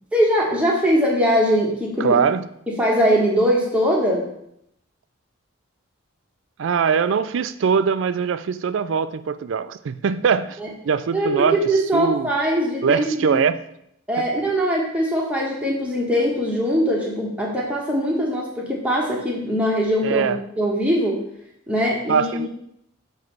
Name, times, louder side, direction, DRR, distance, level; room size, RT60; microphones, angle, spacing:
voice 1, 0.1-2.2 2.7-4.2 10.6-10.7 11.1-13.4 14.1-20.3 20.6-21.2 21.7-22.5, equal, 5° right, -3 dB, 1.2 m, -21 dB
voice 2, 2.0-2.5 6.6-10.6 10.8-11.6 11.9-12.3 12.8-13.6 20.0-20.4 22.1-22.5, right 6 dB, 65° right, 14 dB, 0.3 m, -21 dB
7.4 x 3.2 x 5.9 m, 0.76 s
head